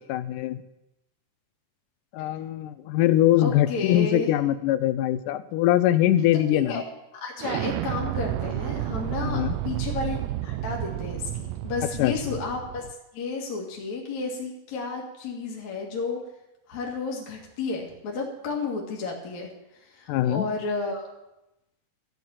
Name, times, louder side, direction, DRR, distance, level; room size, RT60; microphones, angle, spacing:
voice 1, 0.1-0.6 2.1-6.8 9.2-9.6 12.0-12.1 20.1-20.5, left 13 dB, 85° left, 13 dB, 2.2 m, -22 dB
voice 2, 3.4-4.3 6.5-6.8 7.1-12.9 13.1-16.2 16.7-19.5 19.7-21.1, left 4 dB, 60° left, -2 dB, 3.1 m, -32 dB
Explosion, 7.4-12.9, right 14 dB, 90° right, 1.5 m, -31 dB
13.5 x 7.1 x 8.9 m, 0.93 s
omnidirectional pair, 3.7 m